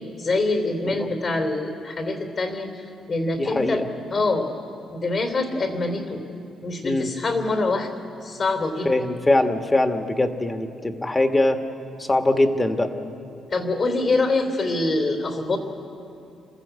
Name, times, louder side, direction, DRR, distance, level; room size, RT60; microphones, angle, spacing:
voice 1, 0.2-3.8 4.1-4.5 4.9-6.2 6.6-7.9 8.2-8.9 13.5-15.6, left 2 dB, 50° left, 5 dB, 3.2 m, -25 dB
voice 2, 3.3-3.9 6.8-7.1 8.8-11.6 12.0-12.9, left 2 dB, 20° left, 6 dB, 1.6 m, -22 dB
29.0 x 14.0 x 8.3 m, 2.7 s
cardioid pair, 90°, 0 cm